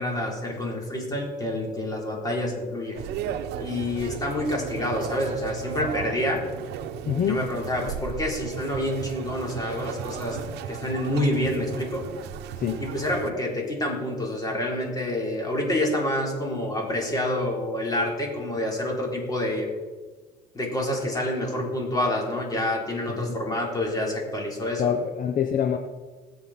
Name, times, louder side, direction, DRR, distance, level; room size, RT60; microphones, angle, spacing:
voice 1, 0.0-3.0 3.6-6.4 7.3-10.4 10.7-12.0 12.8-19.7 20.5-24.9, left 1 dB, 20° left, -1 dB, 4.0 m, -28 dB
sound 1, 3.0-13.3, right 9 dB, 80° right, 0.9 m, -35 dB
voice 2, 7.0-7.4 12.6-12.8 23.1-23.4 24.8-25.8, left 8 dB, 55° left, 6 dB, 0.8 m, -25 dB
19.5 x 8.0 x 4.4 m, 1.4 s
cardioid pair, 110°, 17 cm